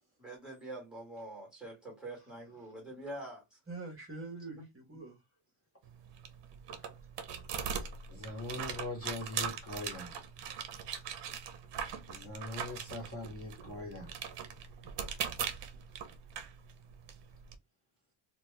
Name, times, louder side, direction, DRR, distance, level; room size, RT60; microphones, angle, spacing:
voice 1, 0.2-3.6 4.6-4.7 4.9-5.0, right 1 dB, ahead, 1.2 m, -45 dB
voice 2, 3.7-5.2 15.7-16.1, right 3 dB, 25° right, 0.9 m, -46 dB
sound 1, 5.8-17.5, right 7 dB, 55° right, 0.7 m, -41 dB
voice 3, 8.1-10.2 12.1-14.1, left 2 dB, 30° left, 0.8 m, -41 dB
2.9 x 2.2 x 3.1 m
cardioid pair, 180°, 50 cm